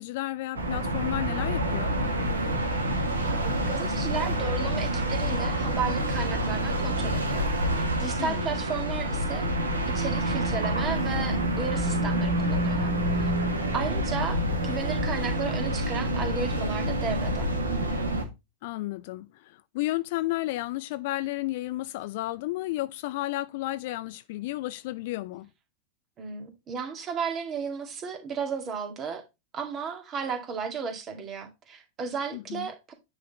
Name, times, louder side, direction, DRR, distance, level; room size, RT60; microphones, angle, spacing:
voice 1, 0.0-2.0 8.2-8.6 18.6-25.5 32.3-32.7, left 17 dB, 50° left, 0.5 m, -32 dB
sound 1, 0.5-18.2, right 1 dB, 75° right, 1.6 m, -27 dB
voice 2, 3.3-9.5 9.9-13.3 13.7-17.5 26.2-29.3 29.5-32.9, right 6 dB, 30° right, 2.0 m, -34 dB
9.4 x 4.0 x 4.0 m
figure-of-eight pair, 90°, 0 cm